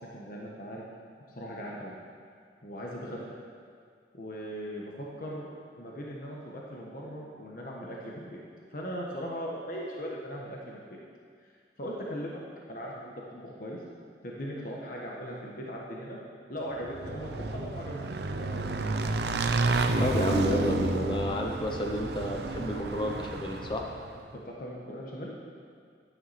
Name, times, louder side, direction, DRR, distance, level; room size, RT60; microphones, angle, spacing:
voice 1, 0.1-0.8 1.3-1.9 2.6-3.4 4.1-5.5 5.8-8.4 8.7-11.0 11.4-12.4 12.7-13.8 14.2-16.2 16.5-18.9 24.4-25.3, equal, 50° left, -3 dB, 1.3 m, -39 dB
Motorcycle / Engine, 16.8-24.2, right 3 dB, 65° right, 0.6 m, -30 dB
voice 2, 20.0-23.8, left 1 dB, 25° left, 1 dB, 0.8 m, -30 dB
12.5 x 9.8 x 4.3 m, 2.1 s
head